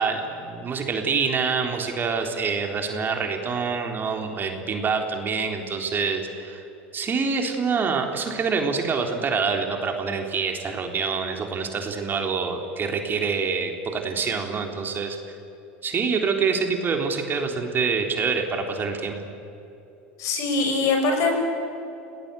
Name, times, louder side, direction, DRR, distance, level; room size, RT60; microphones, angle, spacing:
voice 1, 0.0-6.6 6.9-15.2 15.8-19.2, right 5 dB, 35° right, 3 dB, 3.6 m, -26 dB
voice 2, 20.2-21.3, left 3 dB, 55° left, 4 dB, 6.8 m, -22 dB
30.0 x 18.5 x 8.4 m, 2.9 s
hypercardioid pair, 80°, 6 cm